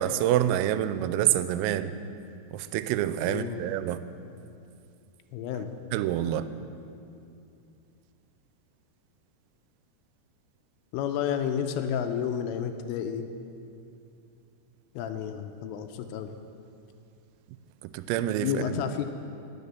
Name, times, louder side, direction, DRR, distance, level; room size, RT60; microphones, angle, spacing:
voice 1, 0.0-2.0 2.5-4.0 5.9-6.5 17.8-18.8, right 12 dB, 85° right, 12 dB, 3.3 m, -27 dB
voice 2, 3.3-3.6 5.3-5.7 10.9-13.3 15.0-16.3 18.4-19.1, left 8 dB, 85° left, 7 dB, 3.1 m, -31 dB
19.0 x 6.8 x 6.9 m, 2.6 s
omnidirectional pair, 5.9 m